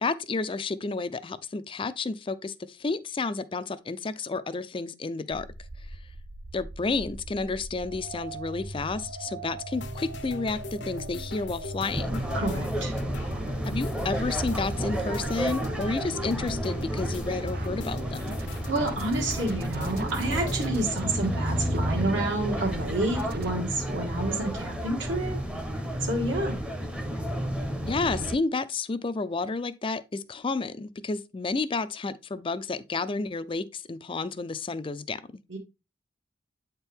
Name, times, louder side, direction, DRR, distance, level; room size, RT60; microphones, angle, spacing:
voice 1, 0.0-5.5 6.5-12.2 13.6-18.3 27.9-35.2, left 3 dB, 25° left, 0.4 m, -31 dB
sound 1, 5.3-23.5, right 3 dB, 55° right, 0.6 m, -41 dB
sound 2, 9.7-20.9, left 2 dB, 65° left, 0.7 m, -40 dB
sound 3, 11.9-28.4, equal, 5° right, 0.7 m, -31 dB
voice 2, 12.3-12.9 18.7-25.4 26.0-26.6 35.5-35.6, right 2 dB, 70° right, 1.8 m, -29 dB
8.7 x 4.4 x 3.4 m
head